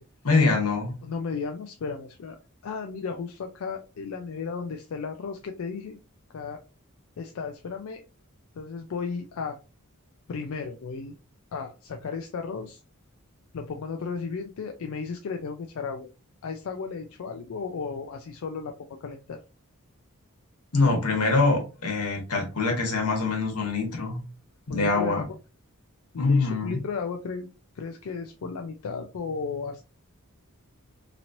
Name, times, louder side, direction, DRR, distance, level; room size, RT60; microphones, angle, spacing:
voice 1, 0.2-0.9 20.7-24.2 24.7-25.2 26.2-26.8, left 3 dB, 90° left, 1 dB, 1.2 m, -24 dB
voice 2, 1.0-2.4 2.6-6.0 6.3-6.6 7.2-8.0 8.6-9.6 10.3-11.1 11.5-12.8 13.5-16.1 16.4-18.8 19.0-19.4 24.7-25.3 26.1-27.5 27.8-29.8, left 5 dB, 65° left, 4 dB, 0.4 m, -34 dB
2.9 x 2.9 x 2.5 m, 0.31 s
head